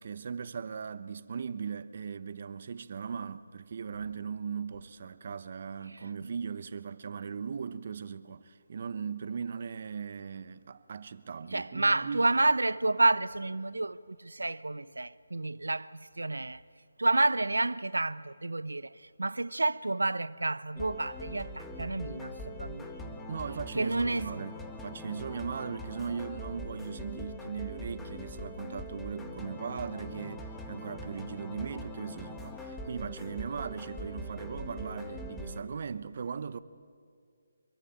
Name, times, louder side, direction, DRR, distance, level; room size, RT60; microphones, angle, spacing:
voice 1, 0.0-12.3 23.3-36.6, right 6 dB, 50° right, 1.0 m, -38 dB
voice 2, 11.5-16.6 17.0-18.9 19.2-23.1 23.8-24.3, right 2 dB, 85° right, 0.7 m, -29 dB
sound 1, 20.8-35.6, left 1 dB, 5° left, 1.8 m, -42 dB
26.0 x 22.0 x 8.9 m
figure-of-eight pair, 155°, 0 cm